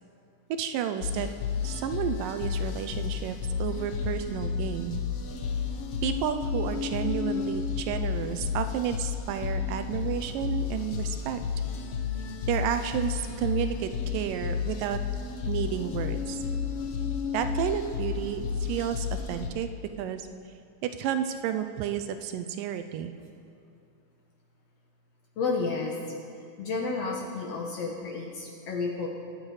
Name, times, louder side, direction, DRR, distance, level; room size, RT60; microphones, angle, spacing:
voice 1, 0.6-1.3 1.6-5.0 6.0-11.4 12.5-15.0 15.5-16.4 17.3-19.7 20.0-20.3 20.8-23.1, right 9 dB, 80° right, 9 dB, 2.2 m, -31 dB
sound 1, 1.0-19.5, left 6 dB, 85° left, 1.3 m, -32 dB
voice 2, 25.4-26.0 26.6-29.1, left 4 dB, 60° left, 0 dB, 1.8 m, -31 dB
23.5 x 7.9 x 4.9 m, 2.5 s
omnidirectional pair, 4.0 m